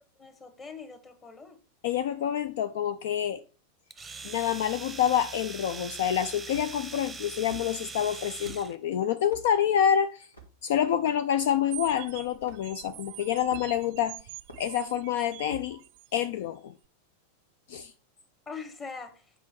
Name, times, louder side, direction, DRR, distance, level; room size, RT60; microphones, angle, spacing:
voice 1, 0.2-1.6 18.5-19.2, left 5 dB, 20° left, 1.4 m, -42 dB
voice 2, 1.8-3.4 4.2-10.3 10.6-14.2 14.6-15.8 16.1-16.7 17.7-17.9, left 9 dB, 55° left, 0.4 m, -27 dB
Domestic sounds home sounds, 3.9-8.7, right 4 dB, 10° right, 0.8 m, -41 dB
sound 1, 6.5-6.9 7.5-7.7 8.4-8.6 9.3-9.5 10.3-10.5 11.4-11.5 12.4-12.6 13.5-13.9 14.5-14.6 15.5-15.7, right 2 dB, 80° left, 1.6 m, -45 dB
sound 2, 11.7-16.2, right 17 dB, 45° right, 0.4 m, -44 dB
8.2 x 4.9 x 4.7 m
figure-of-eight pair, 90°, 0 cm